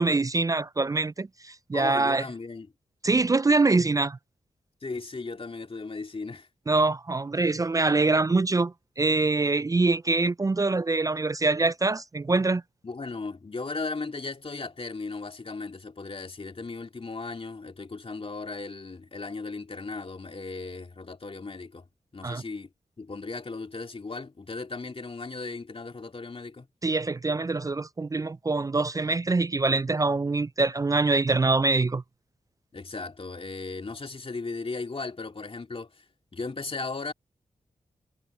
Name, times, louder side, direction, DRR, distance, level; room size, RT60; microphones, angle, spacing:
voice 1, 0.0-2.2 3.0-4.2 6.7-12.6 22.2-22.4 26.8-32.0, right 3 dB, 25° right, 0.3 m, -24 dB
voice 2, 1.7-2.7 4.8-6.5 12.8-21.8 22.1-22.7 23.0-26.7 32.7-36.0 36.3-37.1, left 3 dB, 45° left, 2.8 m, -36 dB
cardioid pair, 60°, 14 cm